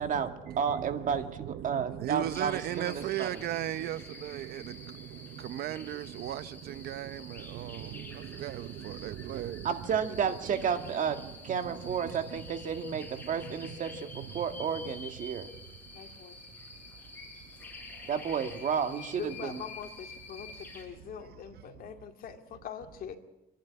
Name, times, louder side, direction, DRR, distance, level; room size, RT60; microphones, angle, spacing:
voice 1, 0.0-9.7 10.5-12.4 12.8-14.3 15.9-16.0 16.7-18.1 21.2-21.3 21.7-21.9, right 13 dB, 65° right, 0.7 m, -39 dB
voice 2, 0.6-3.3 9.6-15.5 18.1-19.6, right 7 dB, 50° right, 2.0 m, -32 dB
sound 1, 2.3-20.8, left 2 dB, 10° left, 5.9 m, -48 dB
voice 3, 15.9-16.4 19.1-23.2, left 8 dB, 60° left, 2.4 m, -43 dB
26.5 x 11.5 x 9.6 m
cardioid pair, 110°, 17 cm